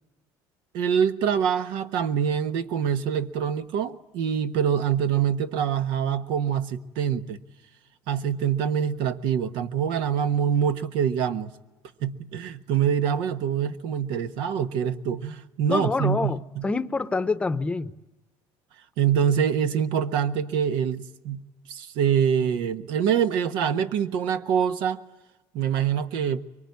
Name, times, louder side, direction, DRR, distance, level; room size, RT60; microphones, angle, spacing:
voice 1, 0.7-7.4 8.1-11.5 12.0-16.7 19.0-21.4 21.7-25.0 25.5-26.4, right 8 dB, 70° right, 1.3 m, -25 dB
voice 2, 15.7-17.9, left 3 dB, 15° left, 0.9 m, -26 dB
24.0 x 23.5 x 9.6 m
cardioid pair, 140°, 8 cm